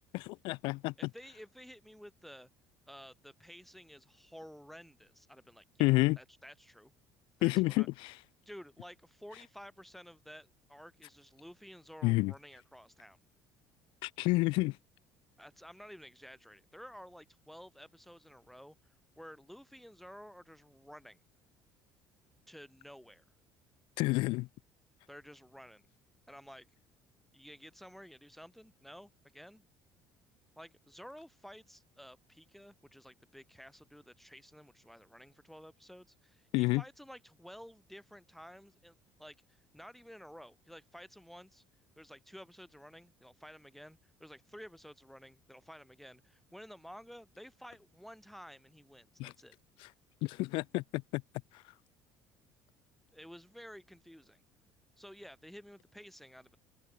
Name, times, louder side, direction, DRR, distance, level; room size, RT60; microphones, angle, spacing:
voice 1, 0.1-0.9 5.8-6.2 7.4-7.9 12.0-12.3 14.0-14.8 24.0-24.5 36.5-36.8 49.2-49.3 50.2-51.2, left 22 dB, 70° left, 0.8 m, -29 dB
voice 2, 1.0-2.5 2.9-6.9 7.4-7.9 8.5-13.2 15.4-21.2 22.5-23.2 25.1-25.9 26.3-26.7 27.3-29.6 30.6-41.6 42.0-49.6 53.1-54.4 55.0-56.6, equal, ahead, 2.0 m, -52 dB
open air
hypercardioid pair, 70°, 9 cm